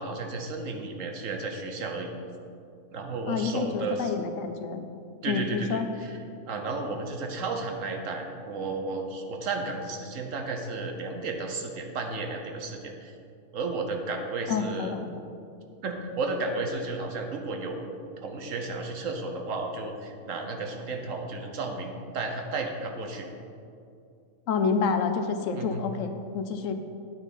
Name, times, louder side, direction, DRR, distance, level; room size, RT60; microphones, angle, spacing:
voice 1, 0.0-2.1 2.9-4.1 5.2-6.2 6.5-13.1 13.5-15.0 15.8-17.9 18.2-23.3 25.5-25.8, right 3 dB, 70° right, 3 dB, 1.3 m, -33 dB
voice 2, 3.3-4.8 5.3-5.9 14.5-15.1 24.5-26.7, left 5 dB, 75° left, 8 dB, 1.0 m, -28 dB
9.0 x 8.9 x 4.0 m, 2.5 s
omnidirectional pair, 1.4 m